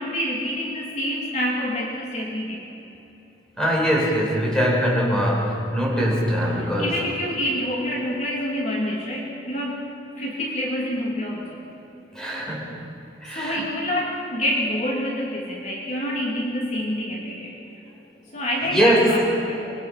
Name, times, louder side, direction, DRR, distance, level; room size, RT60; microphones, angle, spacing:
voice 1, 0.0-2.6 6.5-9.9 10.2-11.7 13.3-17.6 18.3-19.7, equal, 40° left, -3 dB, 2.8 m, -27 dB
voice 2, 3.6-6.9 12.1-12.7 13.2-13.6 18.7-19.1, equal, 5° left, -4 dB, 5.1 m, -22 dB
25.0 x 22.0 x 5.9 m, 2.9 s
head